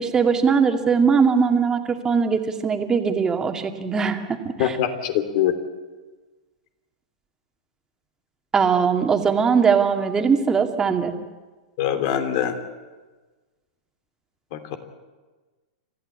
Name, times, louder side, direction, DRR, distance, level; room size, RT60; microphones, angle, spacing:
voice 1, 0.0-4.8 8.5-11.1, right 6 dB, 20° right, 6 dB, 2.3 m, -20 dB
voice 2, 4.6-5.6 11.8-12.6 14.5-14.8, left 10 dB, 50° left, 8 dB, 3.0 m, -23 dB
28.0 x 15.0 x 8.6 m, 1.3 s
figure-of-eight pair, 100°, 4 cm